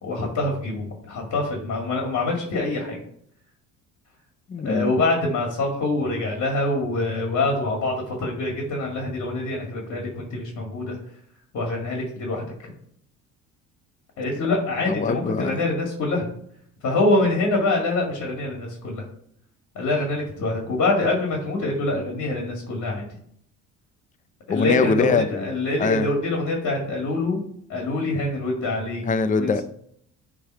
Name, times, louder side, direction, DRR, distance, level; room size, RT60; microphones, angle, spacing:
voice 1, 0.0-3.0 4.6-11.0 11.5-12.5 14.2-16.3 16.8-19.0 19.7-23.1 24.5-27.4 27.7-29.0 29.4-29.6, left 2 dB, 55° left, 1 dB, 2.2 m, -25 dB
voice 2, 4.5-4.9 14.9-15.6 24.5-25.4 25.8-26.1 29.0-29.6, left 4 dB, 25° left, 10 dB, 0.6 m, -22 dB
9.5 x 3.7 x 4.5 m, 0.67 s
cardioid pair, 90°, 32 cm